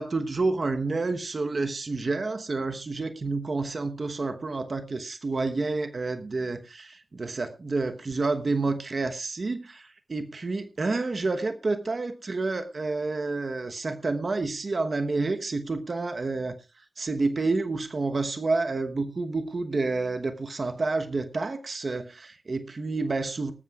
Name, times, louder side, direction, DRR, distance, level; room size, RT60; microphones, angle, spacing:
voice 1, 0.0-16.5 17.0-23.5, right 3 dB, 55° right, 8 dB, 1.1 m, -29 dB
18.0 x 14.0 x 2.4 m, 0.28 s
cardioid pair, 60°, 0 cm